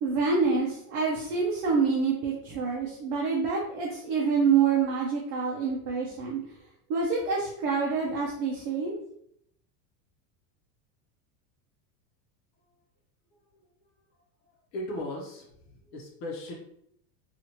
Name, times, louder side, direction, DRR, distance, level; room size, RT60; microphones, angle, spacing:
voice 1, 0.0-6.4 6.9-8.9, right 5 dB, 40° right, -3 dB, 0.4 m, -27 dB
voice 2, 14.7-15.5 15.9-16.5, left 1 dB, 85° left, -1 dB, 0.9 m, -36 dB
2.9 x 2.4 x 2.8 m, 0.73 s
supercardioid pair, 160°, 50 cm